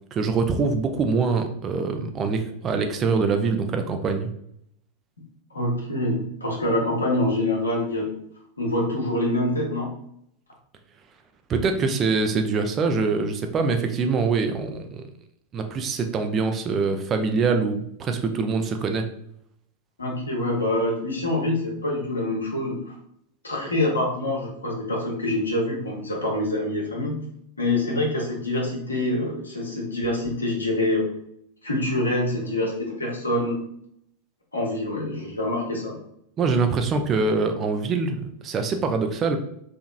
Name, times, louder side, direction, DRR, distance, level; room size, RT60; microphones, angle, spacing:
voice 1, 0.1-4.3 11.5-15.0 15.5-19.1 36.4-39.4, right 4 dB, 25° right, 6 dB, 0.4 m, -24 dB
voice 2, 5.5-8.1 8.6-9.9 20.0-22.8 23.4-27.1 27.6-31.1 31.6-33.6 34.5-35.9, left 1 dB, 80° left, -3 dB, 0.8 m, -25 dB
2.8 x 2.5 x 2.4 m, 0.72 s
figure-of-eight pair, 90°, 0 cm